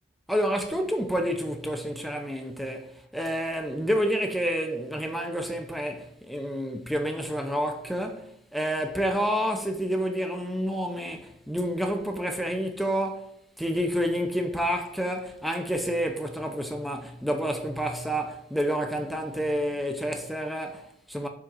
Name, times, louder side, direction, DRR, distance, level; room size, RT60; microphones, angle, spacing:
voice 1, 0.3-21.3, equal, ahead, 0.7 m, -29 dB
7.3 x 3.8 x 6.1 m
head